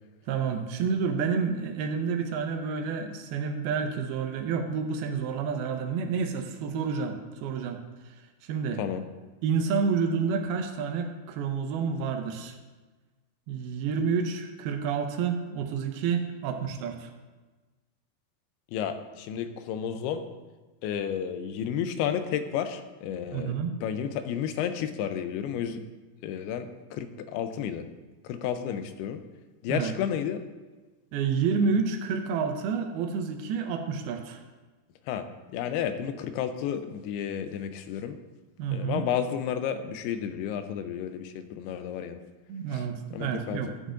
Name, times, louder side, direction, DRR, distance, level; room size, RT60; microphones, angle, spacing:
voice 1, 0.3-9.0 9.4-12.6 13.5-17.1 23.3-23.8 29.7-29.9 31.1-34.4 38.6-39.0 42.5-43.9, right 5 dB, 80° right, 5 dB, 2.6 m, -29 dB
voice 2, 18.7-20.2 20.8-25.8 26.2-27.8 28.2-29.2 29.6-30.4 35.1-35.3 35.5-38.2 38.7-42.2 42.7-42.8 43.1-43.6, left 8 dB, 90° left, 9 dB, 2.6 m, -32 dB
12.0 x 8.2 x 2.5 m, 1.2 s
omnidirectional pair, 4.5 m